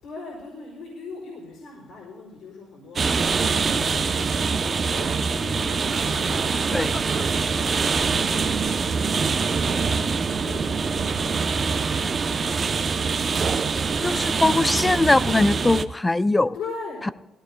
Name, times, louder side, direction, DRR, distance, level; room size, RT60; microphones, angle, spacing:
voice 1, 0.0-14.5 16.5-17.0, left 4 dB, 85° left, -5 dB, 4.8 m, -41 dB
sound 1, 3.0-15.9, right 5 dB, 45° right, 0.6 m, -24 dB
Laughter, 5.3-8.0 10.8-11.6 11.9-12.4, left 2 dB, 30° left, 1.0 m, -41 dB
voice 2, 14.0-16.6, left 2 dB, 15° left, 16 dB, 0.4 m, -21 dB
19.0 x 16.0 x 2.2 m, 1.0 s
cardioid pair, 90°, 0 cm